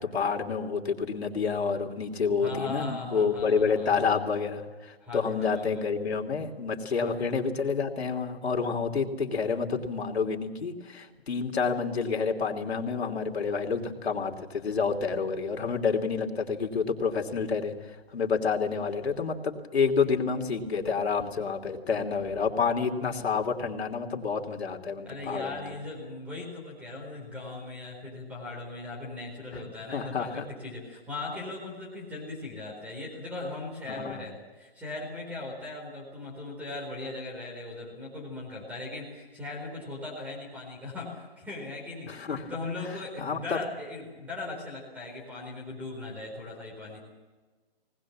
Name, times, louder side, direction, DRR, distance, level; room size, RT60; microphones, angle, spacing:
voice 1, 0.0-25.6 29.5-29.6 29.9-30.5 33.9-34.3 42.1-42.5 42.8-42.9 43.2-43.6, left 5 dB, 90° left, 3 dB, 3.0 m, -29 dB
voice 2, 2.4-3.9 5.0-5.8 7.0-7.1 25.0-47.0, left 3 dB, 5° right, -1 dB, 4.5 m, -39 dB
21.0 x 19.5 x 7.4 m, 1.3 s
hypercardioid pair, 165°, 31 cm